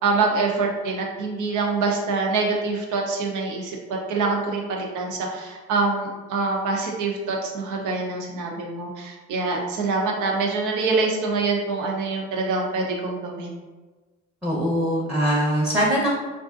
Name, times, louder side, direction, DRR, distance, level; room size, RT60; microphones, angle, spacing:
voice 1, 0.0-13.5, right 3 dB, 85° right, 0 dB, 0.7 m, -25 dB
voice 2, 14.4-16.1, equal, 5° right, -5 dB, 0.7 m, -22 dB
3.4 x 2.6 x 2.4 m, 1.2 s
cardioid pair, 90°, 30 cm